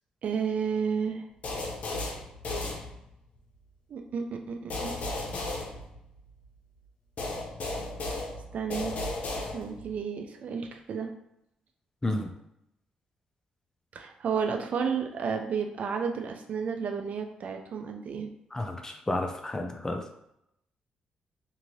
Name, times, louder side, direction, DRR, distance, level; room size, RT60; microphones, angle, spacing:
voice 1, 0.2-1.3 3.9-4.9 8.5-8.9 9.5-11.1 13.9-18.3, right 6 dB, 60° right, 4 dB, 0.4 m, -32 dB
sound 1, 1.4-3.4 4.7-6.5 7.2-10.0, left 2 dB, 60° left, 0.7 m, -35 dB
voice 2, 18.5-20.0, left 1 dB, 20° left, 4 dB, 0.5 m, -31 dB
2.7 x 2.5 x 3.0 m, 0.79 s
supercardioid pair, 60°, 3 cm